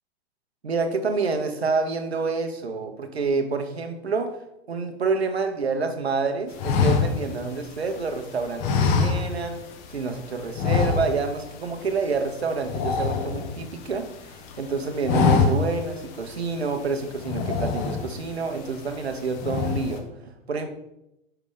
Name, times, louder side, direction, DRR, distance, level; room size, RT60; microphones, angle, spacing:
voice 1, 0.6-4.3 4.7-9.6 9.9-20.7, right 4 dB, 80° right, 6 dB, 1.0 m, -28 dB
sound 1, 6.6-8.1 8.6-9.7 9.9-10.1 10.5-11.4 11.7-11.9 12.2-13.9 14.4-14.6 14.9-15.9 16.3-16.4 17.2-18.3 18.8-19.1 19.4-20.0, left 5 dB, 45° left, 1.1 m, -24 dB
5.8 x 5.6 x 3.8 m, 0.84 s
figure-of-eight pair, 95°, 31 cm